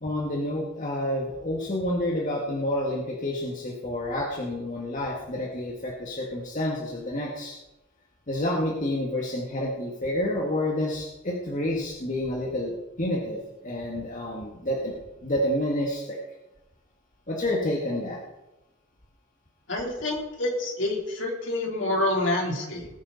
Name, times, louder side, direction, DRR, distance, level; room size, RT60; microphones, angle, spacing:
voice 1, 0.0-7.6 8.3-14.9 15.2-16.2 17.3-18.2, left 1 dB, 40° left, -2 dB, 1.8 m, -29 dB
voice 2, 19.7-22.9, left 1 dB, 65° left, -1 dB, 3.5 m, -27 dB
19.5 x 10.0 x 4.1 m, 1.0 s
head